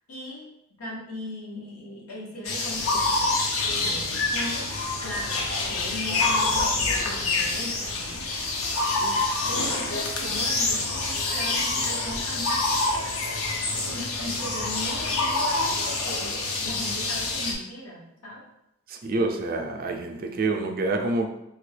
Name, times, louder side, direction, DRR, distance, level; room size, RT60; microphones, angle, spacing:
voice 1, 0.1-0.5 0.8-3.3 3.7-8.3 9.0-13.1 13.4-18.4, equal, 85° left, -3 dB, 1.0 m, -38 dB
sound 1, 2.4-17.5, left 3 dB, 65° left, 0.5 m, -26 dB
voice 2, 18.9-21.3, right 2 dB, 45° right, 3 dB, 0.4 m, -27 dB
3.4 x 2.3 x 3.2 m, 0.84 s
head